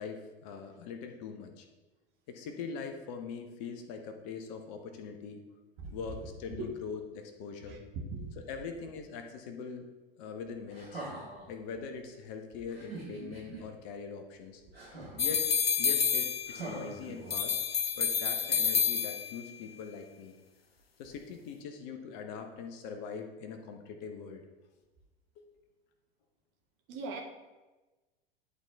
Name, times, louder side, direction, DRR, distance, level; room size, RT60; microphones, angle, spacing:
voice 1, 0.0-1.6 2.3-5.4 5.9-7.8 8.3-9.8 10.2-11.0 11.5-14.6 15.2-15.5 15.8-17.6 18.0-20.4 21.0-24.4 25.4-25.5, left 5 dB, 45° left, 5 dB, 1.0 m, -42 dB
voice 2, 7.7-8.3 26.9-27.2, right 3 dB, 40° right, 1 dB, 1.4 m, -39 dB
sound 1, 10.7-11.5 12.7-13.6 14.7-15.4 16.5-17.6 18.7-18.8, right 2 dB, 90° right, 2.4 m, -43 dB
sound 2, 15.2-16.8 17.3-19.5, left 6 dB, 85° left, 0.5 m, -29 dB
11.0 x 4.0 x 3.5 m, 1.1 s
figure-of-eight pair, 85°, 29 cm